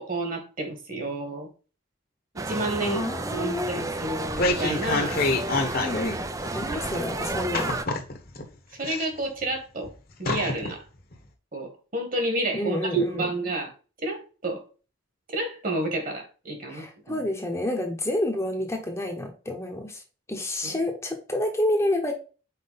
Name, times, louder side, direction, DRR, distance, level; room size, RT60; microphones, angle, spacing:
voice 1, 0.0-1.5 2.3-3.0 3.3-5.2 8.8-9.9 10.2-10.8 11.5-13.7 14.0-14.6 15.3-17.2 20.6-20.8, right 2 dB, 40° right, 1.5 m, -30 dB
sound 1, 2.4-7.8, right 2 dB, 15° right, 0.3 m, -32 dB
voice 2, 2.8-3.9 5.8-6.2 6.5-7.7 12.5-13.3 16.7-20.0 20.3-22.1, left 1 dB, 15° left, 0.8 m, -29 dB
sound 2, 4.0-6.1 6.4-6.5 7.5-8.4 8.8-9.5 9.8-9.9 10.3-10.7 11.1-11.2, left 2 dB, 45° left, 1.0 m, -27 dB
5.7 x 4.5 x 4.0 m
head